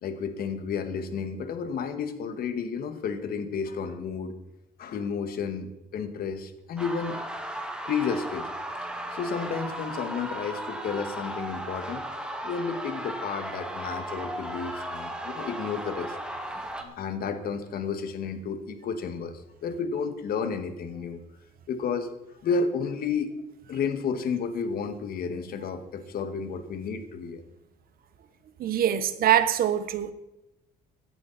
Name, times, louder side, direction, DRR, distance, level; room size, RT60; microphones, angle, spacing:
voice 1, 0.0-4.3 4.8-7.2 7.9-8.5 8.8-12.1 12.4-16.2 16.8-19.3 19.6-21.2 21.7-22.1 22.4-23.3 23.7-27.4, left 5 dB, 60° left, 2.1 m, -31 dB
sound 1, 6.8-16.8, right 1 dB, 5° right, 2.3 m, -36 dB
voice 2, 28.6-30.1, right 10 dB, 60° right, 1.3 m, -23 dB
17.5 x 11.5 x 4.4 m
cardioid pair, 110°, 17 cm